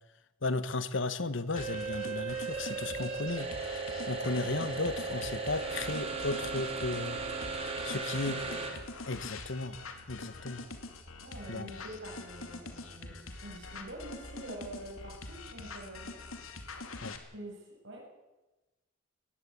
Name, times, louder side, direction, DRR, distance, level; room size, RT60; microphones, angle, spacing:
voice 1, 0.4-3.5 4.1-7.2 7.8-8.4 9.1-9.8 10.1-10.6 11.5-11.7 17.0-17.2, left 3 dB, 60° left, 14 dB, 1.1 m, -34 dB
sound 1, 1.5-8.7, right 4 dB, 30° right, 3.6 m, -36 dB
sound 2, 1.6-17.2, left 3 dB, 80° left, 2.4 m, -45 dB
voice 2, 8.0-8.7 11.2-13.2 13.4-16.1 17.3-18.0, right 1 dB, 60° right, 0 dB, 7.2 m, -46 dB
20.0 x 15.0 x 8.7 m, 1.1 s
head